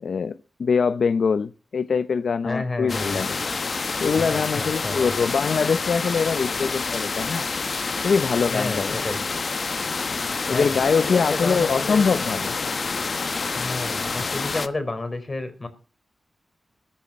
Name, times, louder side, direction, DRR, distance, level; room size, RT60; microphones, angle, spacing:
voice 1, 0.0-3.4 4.0-7.5 8.0-9.0 10.5-12.5, left 5 dB, 75° left, 0.7 m, -23 dB
voice 2, 2.4-3.2 4.3-5.1 8.5-9.2 10.5-10.8 11.0-12.2 13.5-15.7, left 2 dB, 35° left, 4.0 m, -31 dB
sound 1, 2.9-14.7, left 4 dB, 50° left, 1.0 m, -28 dB
14.0 x 8.7 x 7.4 m
wide cardioid pair, 105°, 0 cm